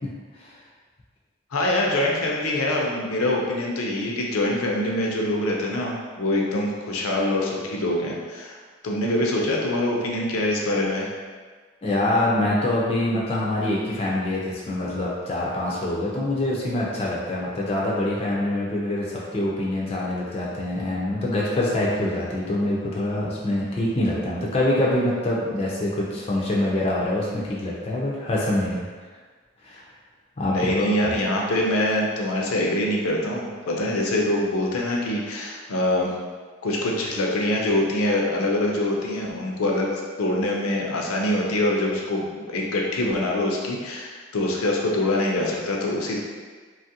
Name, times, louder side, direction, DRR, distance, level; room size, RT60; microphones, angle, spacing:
voice 1, 1.5-8.6 8.8-11.1 30.5-36.1 36.6-46.2, left 1 dB, 90° left, -1 dB, 0.5 m, -24 dB
voice 2, 11.8-28.8 29.6-29.8 30.4-31.1, left 1 dB, 30° left, -5 dB, 0.4 m, -25 dB
2.9 x 2.4 x 2.8 m, 1.5 s
head